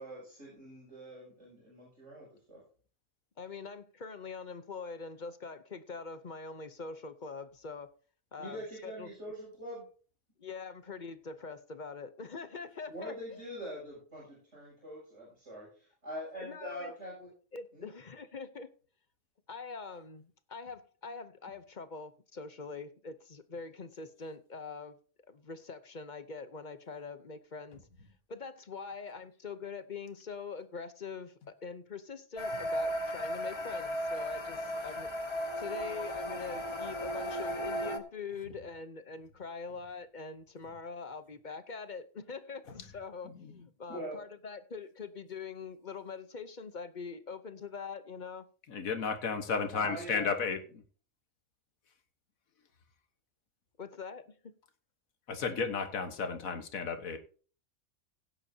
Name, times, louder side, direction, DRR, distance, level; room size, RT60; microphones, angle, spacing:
voice 1, 0.0-2.6 8.4-9.8 12.9-17.3 17.7-17.9 43.9-44.2 49.8-50.5, equal, 55° right, 7.1 m, -44 dB
voice 2, 3.4-7.9 8.3-9.1 10.4-13.4 16.4-16.9 17.5-18.7 19.5-25.0 25.3-27.8 28.3-31.3 31.6-35.1 35.6-48.5 53.8-54.5, left 5 dB, 40° left, 0.8 m, -43 dB
sound 1, 32.4-38.0, equal, 20° left, 1.1 m, -35 dB
voice 3, 48.7-50.6 55.3-57.2, left 5 dB, 85° left, 1.8 m, -33 dB
16.5 x 10.0 x 2.8 m
omnidirectional pair, 1.4 m